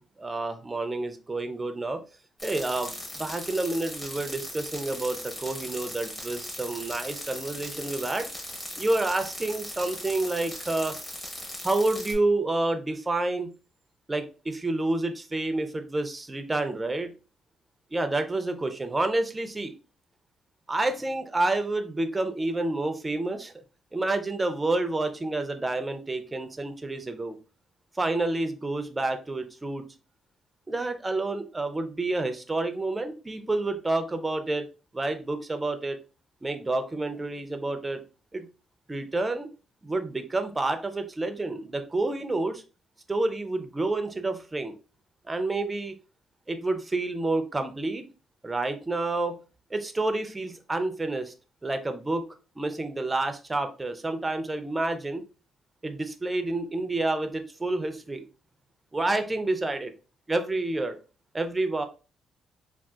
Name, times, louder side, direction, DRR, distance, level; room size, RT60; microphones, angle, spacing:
voice 1, 0.0-2.0 2.4-8.3 8.8-11.0 11.6-13.5 14.1-17.1 17.9-19.7 20.7-23.5 23.9-27.4 28.0-29.8 30.7-34.7 34.9-36.0 36.4-38.0 38.3-38.5 38.9-39.5 39.8-42.6 43.1-44.7 45.3-45.9 46.5-48.0 48.4-49.4 49.7-51.3 51.6-52.3 52.6-55.2 55.8-58.2 58.9-59.9 60.3-61.0 61.3-61.8, right 2 dB, 20° right, 7 dB, 0.5 m, -29 dB
sound 1, 2.4-12.1, equal, 15° left, 1.0 m, -39 dB
3.6 x 2.4 x 2.3 m, 0.34 s
cardioid pair, 90°, 0 cm